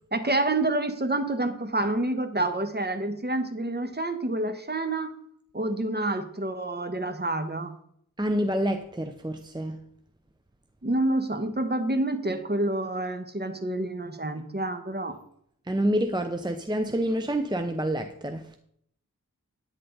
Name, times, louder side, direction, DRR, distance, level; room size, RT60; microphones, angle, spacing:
voice 1, 0.1-5.1 5.5-7.8 10.8-15.2, right 2 dB, 30° right, 1.2 m, -28 dB
voice 2, 8.2-9.8 15.7-18.4, right 1 dB, 15° right, 0.7 m, -27 dB
10.5 x 9.3 x 3.9 m
wide cardioid pair, 65°, 33 cm